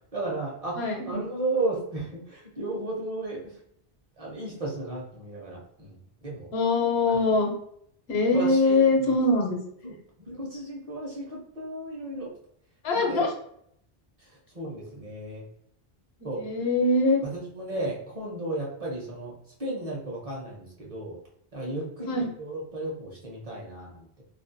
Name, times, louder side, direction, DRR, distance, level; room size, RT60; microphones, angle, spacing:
voice 1, 0.1-0.8 1.0-3.5 4.2-6.0 6.2-6.5 8.3-8.8 9.8-9.9 10.3-12.3 12.9-13.2 14.5-15.4 16.2-16.4 17.3-19.3 19.6-21.2 21.5-24.0, right 2 dB, 40° right, -3 dB, 0.7 m, -34 dB
voice 2, 0.8-1.2 6.5-7.5 8.1-9.6 12.8-13.3 16.4-17.2 22.1-22.3, left 2 dB, 85° left, 2 dB, 0.9 m, -23 dB
2.4 x 2.2 x 2.5 m, 0.68 s
omnidirectional pair, 1.0 m